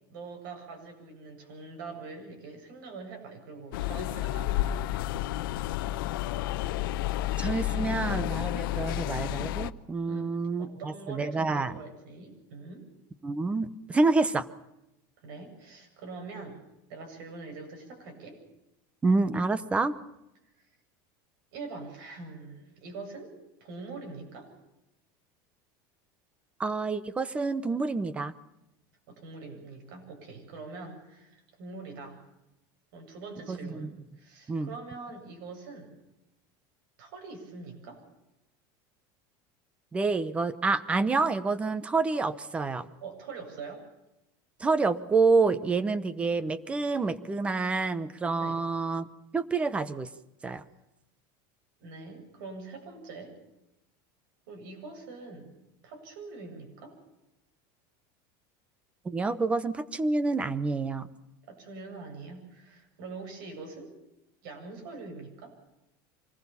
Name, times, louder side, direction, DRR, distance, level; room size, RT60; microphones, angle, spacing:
voice 1, 0.1-5.0 7.7-8.3 10.0-12.9 15.2-16.6 16.9-18.4 20.6-20.7 21.5-23.3 23.6-24.5 29.1-32.2 32.9-35.9 37.0-38.1 43.0-43.9 48.4-48.6 51.8-53.4 54.5-55.6 55.8-57.0 61.5-63.9 64.4-65.6, right 3 dB, 70° right, 4 dB, 7.8 m, -43 dB
sound 1, 3.7-9.7, left 13 dB, 85° left, 0.8 m, -31 dB
voice 2, 7.4-11.7 13.2-14.5 19.0-19.9 26.6-28.3 33.5-33.9 34.5-34.7 39.9-42.9 44.6-49.1 49.3-50.1 50.4-50.6 59.0-61.1, right 3 dB, 10° right, 16 dB, 0.8 m, -28 dB
25.5 x 19.5 x 7.1 m, 0.89 s
cardioid pair, 180°, 11 cm